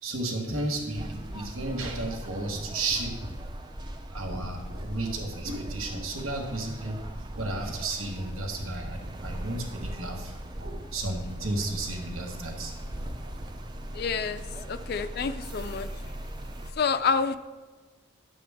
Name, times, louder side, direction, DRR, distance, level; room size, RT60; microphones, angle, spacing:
voice 1, 0.0-3.3 4.1-12.7, right 2 dB, 80° right, 2 dB, 1.3 m, -33 dB
sound 1, 0.9-16.7, right 1 dB, 20° right, 0.4 m, -39 dB
voice 2, 13.9-14.4 14.7-15.9 16.7-17.4, left 5 dB, 45° left, 10 dB, 0.3 m, -28 dB
11.0 x 7.6 x 3.4 m, 1.4 s
head